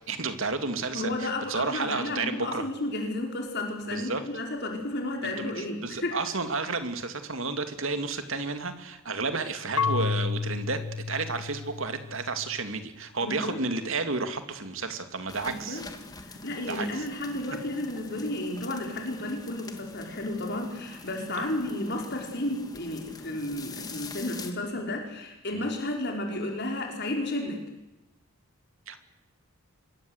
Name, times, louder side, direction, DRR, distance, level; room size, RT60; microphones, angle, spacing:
voice 1, 0.1-2.6 3.9-4.2 5.2-10.8 11.1-15.8 16.7-17.1 21.4-21.5 25.5-25.7 28.9-29.0, right 3 dB, 65° right, 8 dB, 2.6 m, -32 dB
voice 2, 0.9-6.2 13.2-13.6 15.7-15.8 16.2-27.6, left 1 dB, 50° left, 2 dB, 5.2 m, -32 dB
Marimba xylophone / Wood, 9.8-12.6, left 5 dB, 80° left, 0.8 m, -31 dB
sound 1, 15.3-24.5, left 3 dB, 15° left, 2.2 m, -44 dB
26.0 x 21.5 x 8.2 m, 0.96 s
head